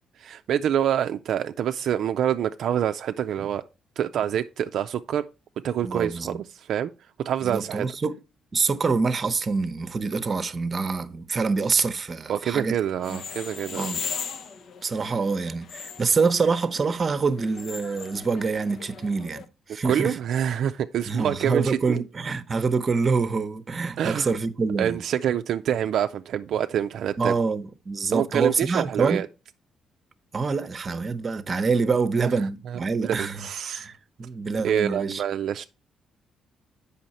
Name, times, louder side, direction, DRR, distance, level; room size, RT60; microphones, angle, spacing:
voice 1, 0.2-3.6 4.0-5.3 5.6-6.9 7.2-7.9 12.3-13.9 19.8-22.0 24.0-24.3 24.8-27.3 28.1-29.3 32.2-32.3 32.7-33.9 34.6-35.7, right 9 dB, 70° right, 0.4 m, -26 dB
voice 2, 5.8-6.4 7.4-8.1 8.5-12.8 13.1-13.2 13.8-14.0 14.8-20.2 21.1-25.0 27.2-29.2 30.3-33.5 33.7-35.2, right 4 dB, 35° right, 0.8 m, -26 dB
sound 1, 13.0-19.4, left 6 dB, 65° left, 0.8 m, -38 dB
7.6 x 5.6 x 4.2 m
cardioid pair, 90°, 0 cm